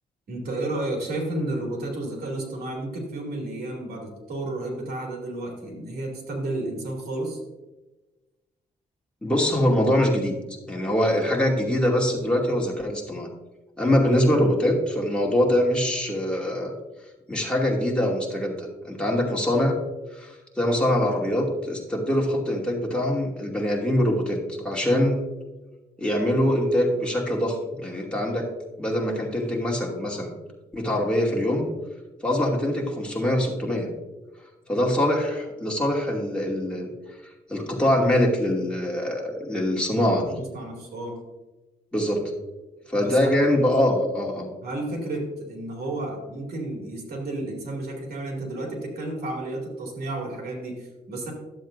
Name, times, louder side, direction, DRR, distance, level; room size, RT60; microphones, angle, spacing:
voice 1, 0.3-7.4 24.8-25.0 40.0-41.2 43.0-43.3 44.6-51.3, right 2 dB, 80° right, 0 dB, 2.7 m, -32 dB
voice 2, 9.2-10.3 10.7-13.3 13.8-16.7 17.3-19.8 20.1-24.4 24.6-25.2 26.0-28.5 28.8-30.3 30.7-31.6 32.2-33.9 34.7-36.9 37.5-40.3 41.9-42.2 42.9-44.5, left 1 dB, 5° left, -3 dB, 2.5 m, -23 dB
11.5 x 7.6 x 2.6 m, 1.1 s
cardioid pair, 80°, 16 cm